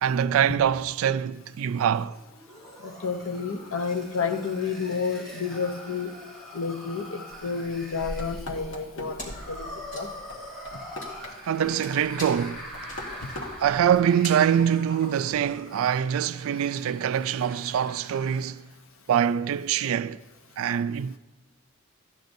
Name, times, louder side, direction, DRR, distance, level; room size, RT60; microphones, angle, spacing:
voice 1, 0.0-2.2 11.5-12.7 13.6-18.6 19.1-20.2 20.6-21.2, right 8 dB, 75° right, 0.3 m, -24 dB
sound 1, 1.9-18.6, equal, 5° left, 3.8 m, -44 dB
voice 2, 2.8-6.2 6.5-9.2 9.5-10.1, left 5 dB, 75° left, 0.8 m, -30 dB
sound 2, 7.3-11.7 12.0-14.0, left 1 dB, 60° left, 1.3 m, -41 dB
Wood, 9.2-9.5 9.8-15.4, left 1 dB, 40° left, 3.0 m, -43 dB
14.5 x 10.0 x 2.6 m
head